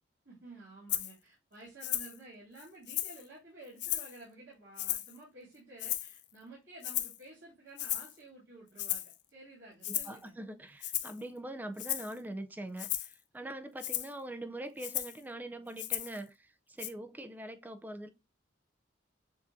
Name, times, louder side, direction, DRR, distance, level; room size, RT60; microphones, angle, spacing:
voice 1, 0.2-10.4, right 2 dB, 80° right, 2.5 m, -52 dB
Rattle (instrument), 0.9-1.1 1.8-2.2 2.6-3.2 3.8-4.2 4.8-5.2 5.8-6.2 6.8-7.2 7.8-8.1 8.8-9.2 9.8-10.2 10.8-11.2 11.8-12.1 12.8-13.1 13.8-14.1 14.8-15.2 15.8-16.2 16.8-16.9, left 13 dB, 65° left, 0.5 m, -35 dB
voice 2, 9.9-18.1, right 1 dB, 10° right, 0.3 m, -43 dB
7.1 x 2.6 x 2.6 m
head